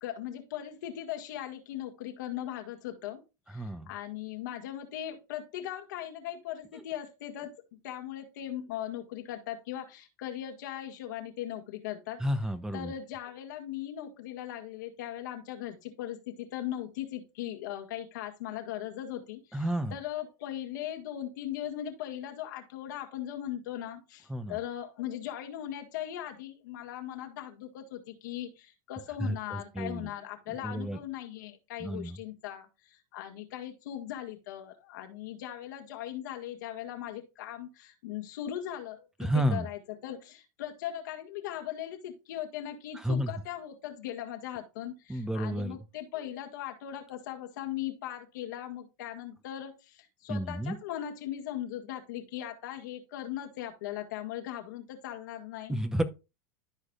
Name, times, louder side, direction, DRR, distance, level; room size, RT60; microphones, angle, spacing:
voice 1, 0.0-3.2 3.5-7.5 7.8-12.2 12.7-55.8, left 11 dB, 75° left, 3 dB, 2.0 m, -39 dB
voice 2, 3.5-3.9 12.2-12.9 19.5-19.9 24.3-24.6 29.2-30.1 30.6-31.0 31.8-32.2 39.2-39.7 42.9-43.3 45.1-45.8 50.3-50.8 55.7-56.0, equal, 5° right, 10 dB, 0.9 m, -31 dB
14.0 x 4.9 x 2.4 m, 0.28 s
hypercardioid pair, 105°, 10 cm